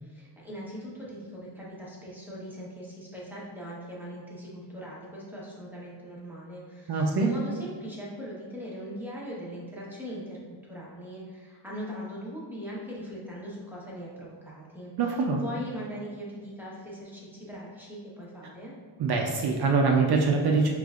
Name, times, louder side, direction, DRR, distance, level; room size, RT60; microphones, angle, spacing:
voice 1, 0.0-14.9 15.3-18.7, equal, 5° right, -6 dB, 1.0 m, -40 dB
voice 2, 6.9-7.3 15.0-15.4 19.0-20.7, right 4 dB, 60° right, 0 dB, 0.5 m, -24 dB
4.9 x 3.2 x 2.4 m, 1.5 s
cardioid pair, 115°, 44 cm